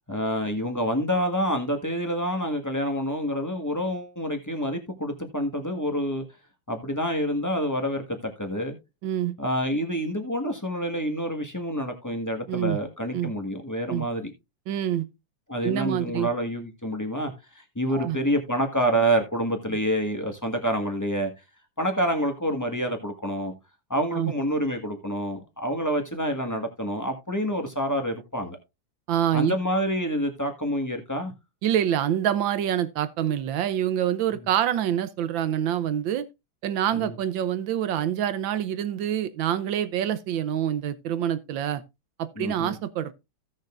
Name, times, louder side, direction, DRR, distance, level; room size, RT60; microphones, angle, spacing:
voice 1, 0.1-6.2 6.7-8.8 9.4-14.3 15.5-21.3 21.8-23.5 23.9-28.6 29.3-31.3 34.3-34.4 36.9-37.1 42.4-42.8, equal, 10° left, 1.2 m, -27 dB
voice 2, 9.0-9.4 12.5-12.8 13.1-13.3 13.9-14.0 14.7-15.1 15.6-16.3 17.9-18.2 24.1-24.3 29.1-29.6 31.6-36.2 36.6-41.8 42.2-43.1, right 10 dB, 75° right, 1.5 m, -26 dB
16.0 x 6.5 x 2.5 m
omnidirectional pair, 2.2 m